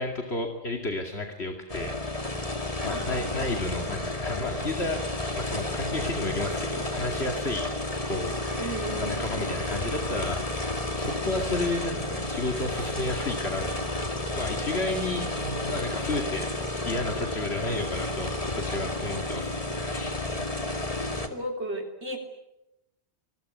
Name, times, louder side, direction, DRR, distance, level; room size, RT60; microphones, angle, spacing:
voice 1, 0.0-2.3 2.8-5.0 5.4-7.7 8.0-10.5 10.9-13.7 14.3-16.5 16.8-20.2, left 2 dB, 70° left, 3 dB, 2.7 m, -32 dB
sound 1, 1.7-21.3, left 1 dB, 30° left, 2.3 m, -31 dB
voice 2, 2.9-3.5 8.6-9.4 21.3-22.2, right 1 dB, 80° right, 3 dB, 3.6 m, -35 dB
27.0 x 21.0 x 9.5 m, 0.90 s
omnidirectional pair, 1.1 m